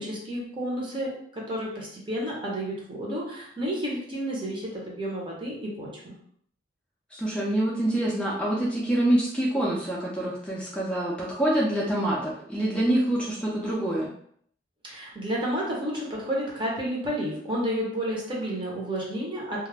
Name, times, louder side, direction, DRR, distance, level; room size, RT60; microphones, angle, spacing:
voice 1, 0.0-6.1 14.8-19.7, equal, 30° right, -4 dB, 0.8 m, -31 dB
voice 2, 7.1-14.1, right 1 dB, 5° left, -6 dB, 0.4 m, -26 dB
2.3 x 2.0 x 3.3 m, 0.64 s
head